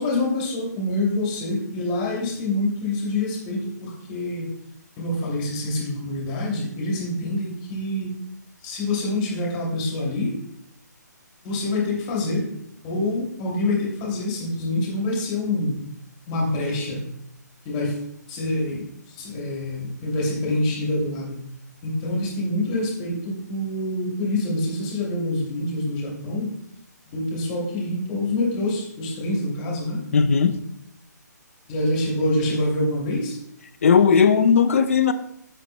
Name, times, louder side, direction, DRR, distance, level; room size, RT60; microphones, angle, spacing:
voice 1, 0.0-4.5 5.0-8.2 8.6-10.4 11.4-12.5 12.8-15.9 16.3-17.1 17.6-18.0 18.3-21.5 21.8-26.5 27.1-30.0 31.7-33.4, left 2 dB, 25° left, -2 dB, 2.8 m, -26 dB
voice 2, 30.1-30.6 33.8-35.1, left 6 dB, 45° left, 11 dB, 0.7 m, -17 dB
16.0 x 5.8 x 2.3 m, 0.76 s
figure-of-eight pair, 140°, 10 cm